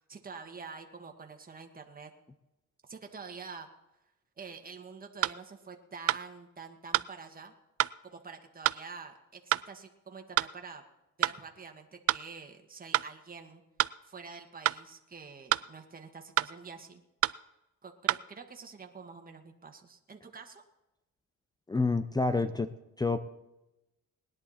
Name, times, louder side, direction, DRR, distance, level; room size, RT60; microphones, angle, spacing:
voice 1, 0.1-2.1 2.8-3.7 4.4-7.5 8.0-10.8 11.2-13.6 14.0-17.0 17.8-20.6, right 5 dB, 30° right, 4 dB, 1.8 m, -47 dB
sound 1, 5.2-5.4 6.1-6.2 6.9-7.1 7.8-7.9 8.6-8.8 9.5-9.7 10.4-10.5 11.2-11.4 12.1-12.2 12.9-13.1 13.8-13.9 14.6-14.8 15.5-15.7 16.4-16.5 17.2-17.4 18.1-18.2, right 13 dB, 50° right, 0.4 m, -27 dB
voice 2, 21.7-22.7 23.0-23.2, left 3 dB, 15° left, 11 dB, 0.7 m, -28 dB
20.0 x 10.5 x 4.3 m, 0.94 s
cardioid pair, 90°, 30 cm